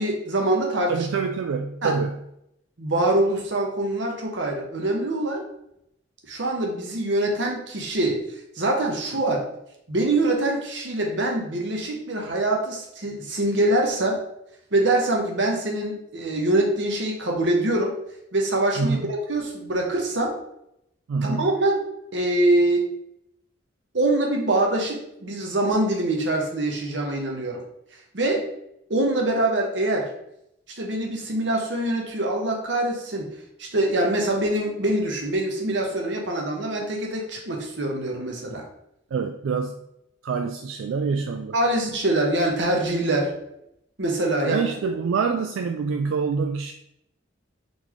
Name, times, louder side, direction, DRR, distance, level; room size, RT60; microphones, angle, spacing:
voice 1, 0.0-0.9 1.8-1.9 2.8-5.4 6.3-8.2 8.6-9.5 9.9-14.2 14.7-17.9 18.3-20.3 21.2-21.8 22.1-22.9 23.9-27.6 28.1-28.4 28.9-30.1 30.8-33.2 33.6-38.6 41.5-43.3 44.0-44.6, right 1 dB, 70° right, 0 dB, 1.0 m, -24 dB
voice 2, 0.9-2.2 18.8-19.1 21.1-21.5 39.1-39.8 40.2-41.5 44.4-46.7, right 5 dB, 90° right, 5 dB, 0.3 m, -26 dB
3.9 x 3.6 x 3.1 m, 0.78 s
head